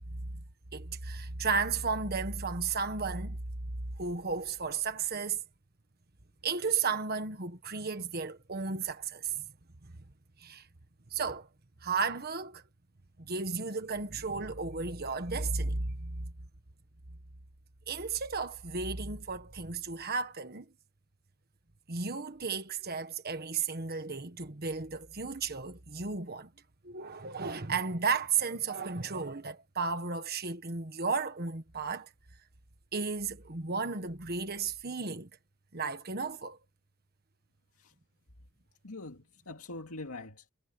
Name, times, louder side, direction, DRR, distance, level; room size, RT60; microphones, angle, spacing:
voice 1, 0.7-3.4 4.0-5.4 6.4-9.4 10.4-10.7 11.1-11.5 11.8-12.6 13.2-16.2 17.9-20.7 21.9-26.5 26.8-32.1 32.9-35.3 35.7-36.6, right 5 dB, 45° right, 1.5 m, -34 dB
voice 2, 38.8-40.5, left 2 dB, 80° left, 2.2 m, -44 dB
head